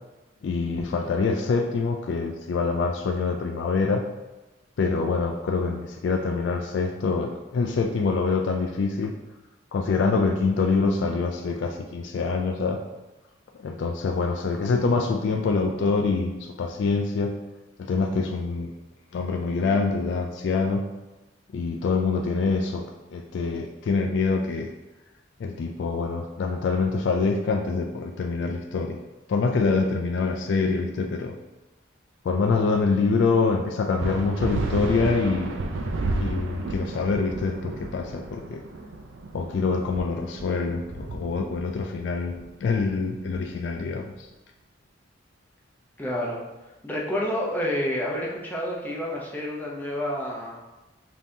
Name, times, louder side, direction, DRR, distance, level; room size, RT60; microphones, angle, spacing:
voice 1, 0.4-4.1 4.8-9.1 9.7-12.8 13.5-17.4 17.8-18.7 19.1-20.9 21.5-22.8 23.1-24.7 25.4-29.0 29.3-31.4 32.2-35.6 36.2-38.6 39.3-44.3, left 4 dB, 65° left, 3 dB, 0.3 m, -25 dB
sound 1, 34.0-43.9, right 2 dB, 80° right, 0.4 m, -32 dB
voice 2, 46.0-46.4 46.8-50.6, left 1 dB, 10° left, -4 dB, 0.6 m, -29 dB
5.2 x 2.8 x 2.7 m, 1.1 s
head